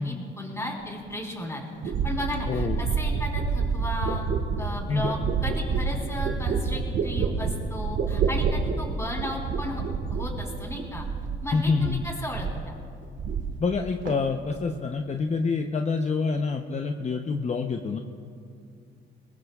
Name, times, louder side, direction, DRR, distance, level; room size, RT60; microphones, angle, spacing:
voice 1, 0.0-4.3 4.6-9.8 10.1-11.1 11.4-12.5, left 1 dB, 15° left, -1 dB, 3.8 m, -35 dB
sound 1, 1.1-1.2 1.8-11.5 11.8-12.7 13.0-13.8 14.1-14.6, right 5 dB, 75° right, 1.7 m, -28 dB
voice 2, 2.5-2.8 4.9-5.1 11.5-12.0 13.6-18.0, left 4 dB, 35° left, 4 dB, 0.8 m, -27 dB
23.0 x 19.5 x 2.4 m, 2.4 s
cardioid pair, 90°, 20 cm